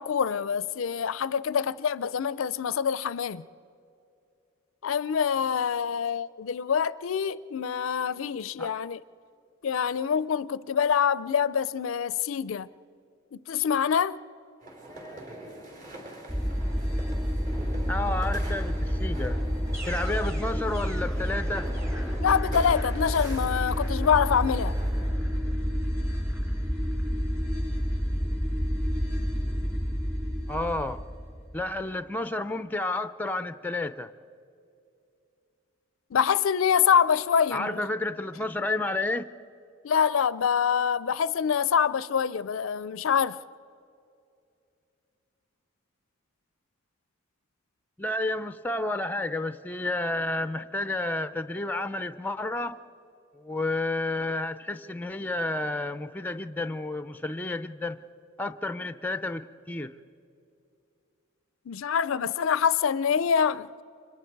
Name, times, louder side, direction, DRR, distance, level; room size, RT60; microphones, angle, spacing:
voice 1, 0.0-3.5 4.8-9.0 9.6-12.7 13.3-14.2 22.2-24.8 36.1-37.8 39.8-43.4 61.7-63.7, left 7 dB, 75° left, 0.4 m, -25 dB
sound 1, 14.6-25.1, right 1 dB, 40° right, 4.3 m, -44 dB
sound 2, 16.3-31.7, equal, 15° right, 2.8 m, -29 dB
voice 2, 17.9-19.4 19.8-21.7 30.5-31.0 31.5-34.1 37.5-39.3 48.0-52.8 53.4-58.0 58.4-59.9, left 2 dB, 10° left, 0.5 m, -31 dB
29.5 x 25.0 x 4.6 m
head